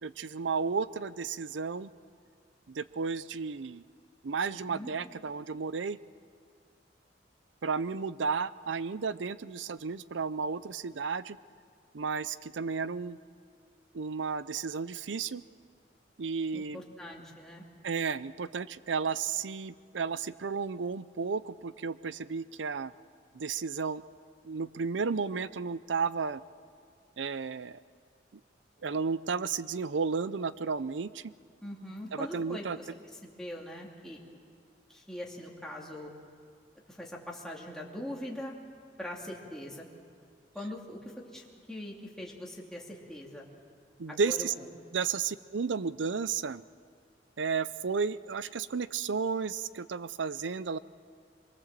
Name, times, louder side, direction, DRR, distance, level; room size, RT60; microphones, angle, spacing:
voice 1, 0.0-1.9 2.7-3.8 4.2-6.0 7.6-11.4 11.9-13.2 13.9-15.4 16.2-16.8 17.8-22.9 23.3-24.0 24.4-26.4 27.2-27.8 28.8-31.3 32.1-32.8 44.0-44.5 44.9-46.6 47.4-50.8, right 5 dB, 80° right, 16 dB, 0.6 m, -33 dB
voice 2, 4.5-4.9 16.5-17.6 31.6-32.9 33.2-34.2 34.9-36.1 36.9-38.5 39.0-39.9 40.5-43.5 44.1-44.7, left 1 dB, 5° left, -3 dB, 2.8 m, -42 dB
25.0 x 22.5 x 7.5 m, 2.1 s
head